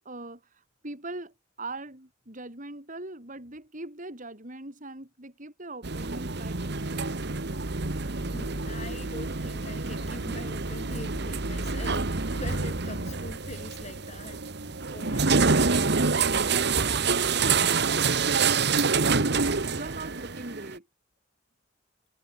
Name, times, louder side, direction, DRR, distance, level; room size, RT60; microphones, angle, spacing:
voice 1, 0.0-7.3 15.0-15.8 16.3-20.9, right 2 dB, 45° right, 5.6 m, -41 dB
sound 1, 5.8-20.8, right 4 dB, 60° right, 1.5 m, -27 dB
voice 2, 8.2-15.4, left 2 dB, 35° left, 7.0 m, -43 dB
head